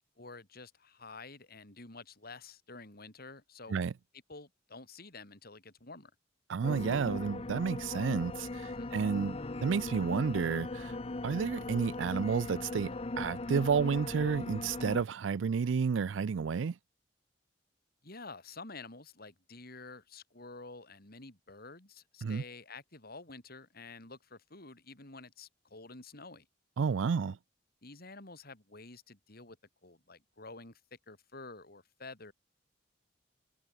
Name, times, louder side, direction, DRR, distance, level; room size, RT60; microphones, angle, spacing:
voice 1, 0.0-3.8 4.3-6.1 8.6-8.9 18.0-26.5 27.8-29.6 29.8-30.8 31.1-32.3, left 3 dB, 55° left, 4.8 m, -49 dB
voice 2, 6.5-11.0 11.2-16.7 22.2-22.4 26.8-27.4, right 6 dB, 90° right, 0.4 m, -31 dB
sound 1, 6.6-15.0, left 2 dB, 35° left, 0.8 m, -39 dB
head